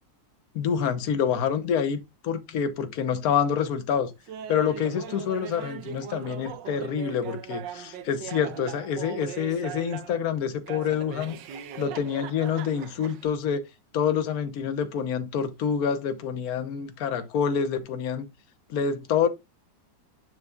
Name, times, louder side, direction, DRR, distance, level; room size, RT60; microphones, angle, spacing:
voice 1, 0.5-4.1 4.5-11.4 11.8-13.6 13.9-18.3 18.7-19.3, left 7 dB, 60° left, 1.4 m, -27 dB
Laughter, 4.3-10.2 10.7-13.3, right 9 dB, 80° right, 1.4 m, -40 dB
7.1 x 6.7 x 2.4 m
omnidirectional pair, 1.9 m